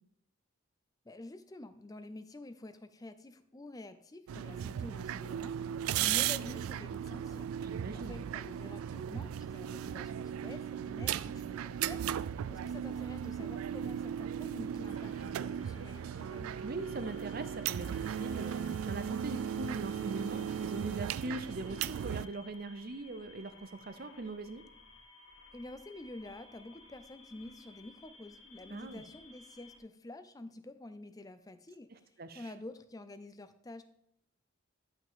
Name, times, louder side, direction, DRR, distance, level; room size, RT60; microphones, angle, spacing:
voice 1, 1.0-16.5 25.5-33.8, left 2 dB, 15° left, 11 dB, 0.5 m, -49 dB
sound 1, 4.3-22.3, right 9 dB, 90° right, 0.3 m, -36 dB
voice 2, 7.6-8.2 16.6-24.6 28.7-29.0 31.9-32.4, right 2 dB, 45° right, 11 dB, 0.6 m, -41 dB
sound 2, 14.8-29.8, left 3 dB, 75° left, 1.5 m, -57 dB
11.5 x 5.8 x 3.6 m, 0.75 s
head